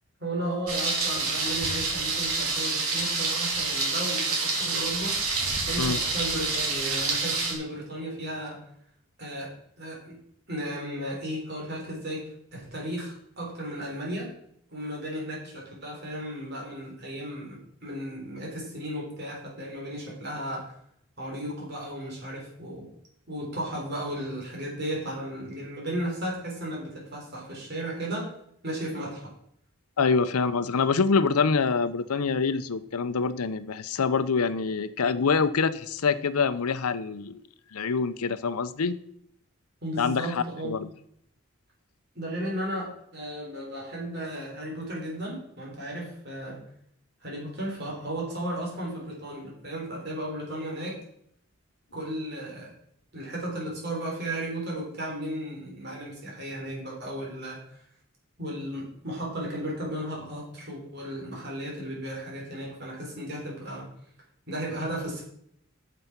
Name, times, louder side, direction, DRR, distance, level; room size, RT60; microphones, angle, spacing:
voice 1, 0.2-5.4 5.7-8.6 9.2-10.2 10.5-14.3 14.7-20.7 21.2-22.9 23.3-28.3 28.6-29.3 39.8-40.8 42.2-46.6 47.2-51.0 51.9-52.7 53.1-57.8 58.4-63.9 64.5-65.2, right 1 dB, 50° right, -2 dB, 3.6 m, -35 dB
Thunder, 0.7-7.5, right 3 dB, 80° right, 2.5 m, -28 dB
voice 2, 30.0-37.4 37.7-39.0 40.0-40.9, left 5 dB, 90° left, 14 dB, 0.6 m, -25 dB
9.3 x 6.8 x 6.0 m, 0.71 s
head